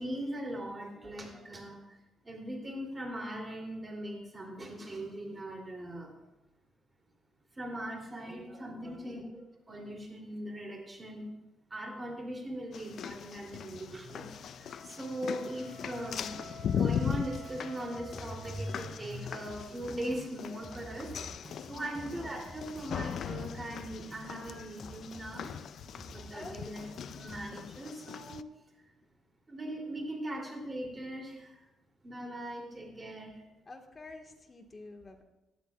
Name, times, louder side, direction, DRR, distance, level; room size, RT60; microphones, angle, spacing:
voice 1, 0.0-1.8 2.2-6.1 7.6-9.4 9.7-11.3 11.7-21.1 21.7-25.5 26.1-26.8 27.1-28.4 29.5-31.6 32.0-33.3, right 1 dB, 25° right, 1 dB, 3.2 m, -40 dB
voice 2, 8.8-9.3 21.7-22.1 26.3-26.8 29.0-29.1 33.7-35.2, left 2 dB, 25° left, 3 dB, 1.7 m, -49 dB
sound 1, 12.7-28.4, left 8 dB, 65° left, 0.4 m, -39 dB
sound 2, 14.6-19.1, equal, 65° right, 1.7 m, -51 dB
Drum kit, 16.8-27.4, right 1 dB, ahead, 4.7 m, -51 dB
18.0 x 12.0 x 2.5 m, 0.98 s
cardioid pair, 90°, 0 cm